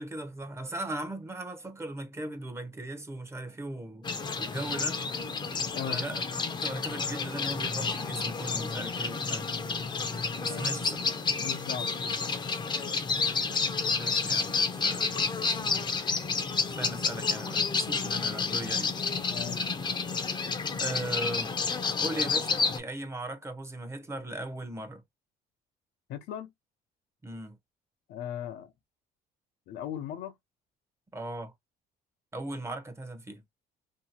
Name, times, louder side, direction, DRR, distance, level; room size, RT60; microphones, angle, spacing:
voice 1, 0.0-4.1 4.4-5.0 5.9-6.2 6.6-9.5 10.4-11.0 13.9-15.3 16.7-18.9 20.8-21.5 22.0-25.0 27.2-27.6 31.1-31.5 32.3-33.4, right 1 dB, 15° right, 0.7 m, -38 dB
sound 1, 4.0-22.8, left 4 dB, 25° left, 0.5 m, -30 dB
voice 2, 5.7-6.1 10.5-10.6 11.4-12.1 19.3-19.6 26.1-26.5 28.1-28.7 29.7-30.3, left 10 dB, 80° left, 0.5 m, -38 dB
2.7 x 2.6 x 2.7 m
cardioid pair, 110°, 17 cm